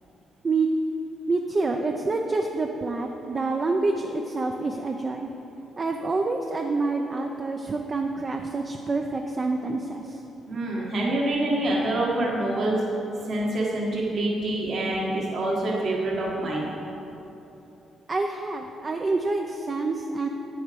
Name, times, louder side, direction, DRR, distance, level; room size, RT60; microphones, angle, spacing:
voice 1, 1.3-5.3 5.8-10.2 18.1-20.3, right 3 dB, 35° right, 3 dB, 0.6 m, -27 dB
voice 2, 10.5-12.8 13.3-16.7, right 1 dB, 60° right, -4 dB, 1.8 m, -26 dB
8.9 x 7.7 x 5.2 m, 3.0 s
cardioid pair, 90°, 0 cm